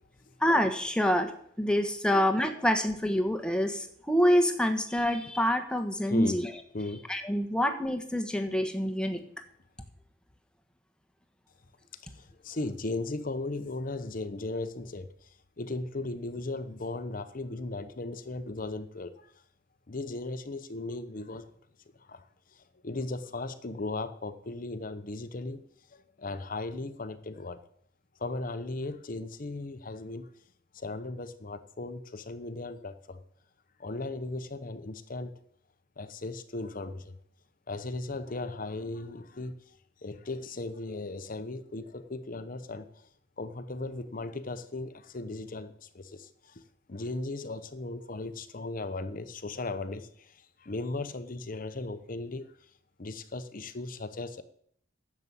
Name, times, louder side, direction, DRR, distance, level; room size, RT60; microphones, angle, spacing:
voice 1, 0.4-1.3 1.6-6.5 7.1-9.2, equal, 5° left, 7 dB, 1.3 m, -26 dB
voice 2, 12.0-15.1 15.6-19.3 19.9-21.5 22.1-22.2 22.8-25.6 25.9-27.6 28.2-30.3 30.7-33.2 33.8-35.4 36.0-37.2 37.7-39.6 40.0-42.9 43.4-46.5 46.9-50.3 50.6-52.5 53.0-54.4, left 2 dB, 45° left, 11 dB, 0.8 m, -37 dB
11.0 x 7.4 x 8.3 m, 0.66 s
head